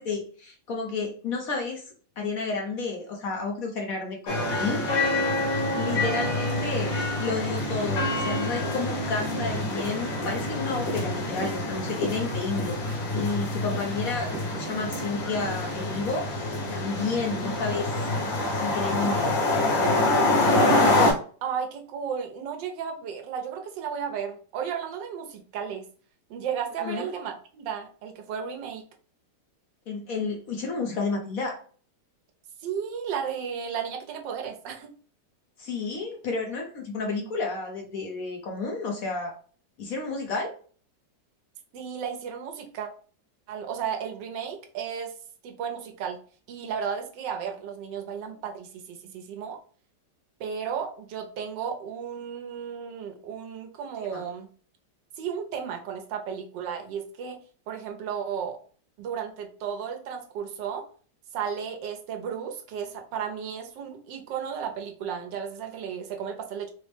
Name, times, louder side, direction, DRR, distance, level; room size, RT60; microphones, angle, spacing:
voice 1, 0.0-1.8 2.2-4.8 5.7-12.8 13.1-17.9 18.6-19.4 26.8-27.1 29.9-31.6 35.6-39.3 39.8-40.5 54.1-54.2, left 4 dB, 60° left, 1 dB, 1.1 m, -31 dB
sound 1, 4.3-21.1, left 2 dB, 85° left, 1.8 m, -26 dB
voice 2, 21.4-25.8 26.3-28.8 32.6-34.9 41.7-42.9 43.5-45.1 45.4-46.2 46.5-49.6 50.4-54.5 55.2-57.4 57.7-58.6 59.0-60.8 61.3-66.7, right 7 dB, 80° right, 4 dB, 1.3 m, -34 dB
4.2 x 2.1 x 3.2 m, 0.42 s
omnidirectional pair, 1.9 m